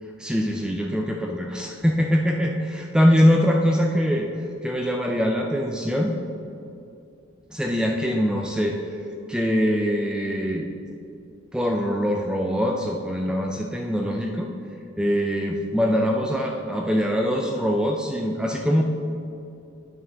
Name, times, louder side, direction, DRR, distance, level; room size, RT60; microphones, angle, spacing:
voice 1, 0.2-4.3 4.6-6.2 7.5-8.9 9.3-10.7 11.5-14.5 15.0-18.8, equal, 5° right, 1 dB, 0.3 m, -23 dB
8.8 x 6.3 x 3.4 m, 2.6 s
head